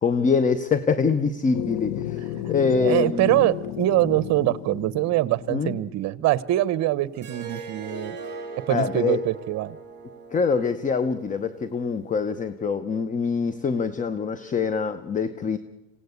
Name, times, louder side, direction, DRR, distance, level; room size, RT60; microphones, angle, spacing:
voice 1, 0.0-3.4 5.5-5.8 8.7-9.2 10.3-15.6, left 5 dB, 25° left, 13 dB, 0.8 m, -24 dB
sound 1, 1.5-6.2, left 13 dB, 80° left, 1.0 m, -33 dB
voice 2, 2.3-8.2 8.7-9.8, right 15 dB, 55° right, 18 dB, 0.9 m, -24 dB
Harp, 7.1-12.3, right 4 dB, 30° right, 5.7 m, -40 dB
26.5 x 17.0 x 8.1 m, 1.1 s
cardioid pair, 125°, 33 cm